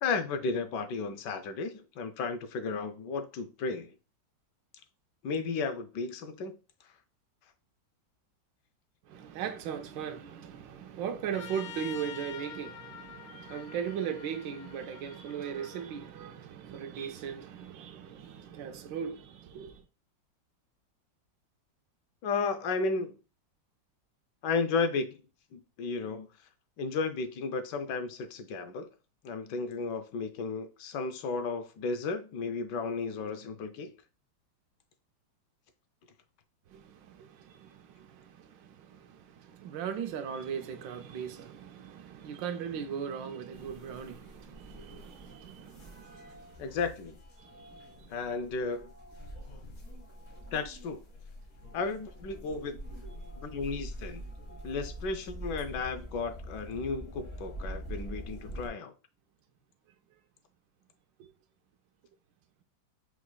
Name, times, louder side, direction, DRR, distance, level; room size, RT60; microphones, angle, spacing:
voice 1, 0.0-3.9 5.2-6.5 22.2-23.2 24.4-25.2 25.5-26.3 26.8-28.9 29.2-33.9 46.6-47.2 48.1-48.9 50.5-51.0 51.7-52.8 53.4-54.2 54.6-58.9, left 4 dB, 75° left, 1.2 m, -33 dB
voice 2, 9.1-19.8 36.7-46.7 47.4-48.2 61.2-61.3, right 8 dB, 80° right, 1.3 m, -39 dB
Trumpet, 11.3-15.9, left 8 dB, 90° left, 1.5 m, -47 dB
sound 1, 43.5-58.7, equal, 45° left, 1.5 m, -45 dB
4.7 x 4.0 x 2.2 m
omnidirectional pair, 2.0 m